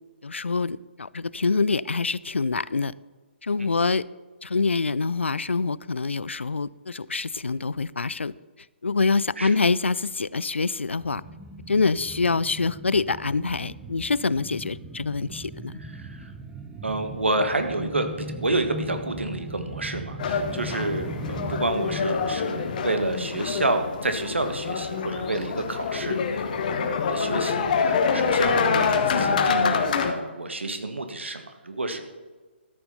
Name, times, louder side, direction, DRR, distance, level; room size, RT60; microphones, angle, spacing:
voice 1, 0.2-2.9 3.4-4.0 4.4-8.3 8.8-11.2 11.7-15.7, left 4 dB, 80° left, 20 dB, 0.4 m, -25 dB
Alien Ship Takeoff, 11.0-24.1 24.4-24.5, right 1 dB, 10° right, 0.9 m, -39 dB
voice 2, 15.8-16.3 16.8-32.0, right 2 dB, 75° right, 7 dB, 1.5 m, -29 dB
sound 1, 20.2-30.1, left 5 dB, 40° left, 1.1 m, -26 dB
13.0 x 6.8 x 5.4 m, 1.3 s
figure-of-eight pair, 135°, 6 cm